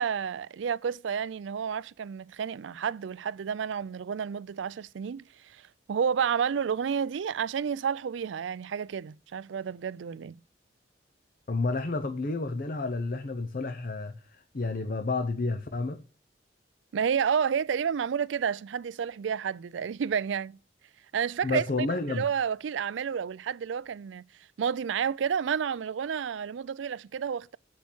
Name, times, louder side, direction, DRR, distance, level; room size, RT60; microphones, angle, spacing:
voice 1, 0.0-10.3 16.9-20.6 21.1-24.2 24.6-27.6, right 7 dB, 90° right, 0.4 m, -30 dB
voice 2, 11.5-16.0 21.4-22.3, left 3 dB, 50° left, 0.7 m, -30 dB
8.3 x 6.3 x 6.2 m
head